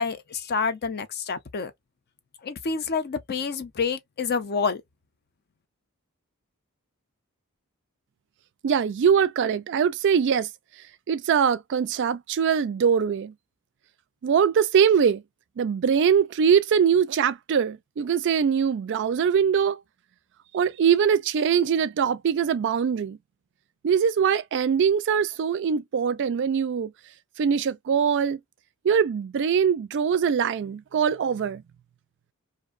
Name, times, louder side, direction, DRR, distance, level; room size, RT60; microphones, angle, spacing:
voice 1, 0.0-1.7 2.4-4.8, left 5 dB, 45° left, 0.5 m, -28 dB
voice 2, 8.6-10.5 11.1-13.3 14.2-15.2 15.6-19.8 20.5-23.2 23.8-26.9 27.4-28.4 28.8-31.6, right 7 dB, 55° right, 0.3 m, -22 dB
2.6 x 2.1 x 2.4 m
head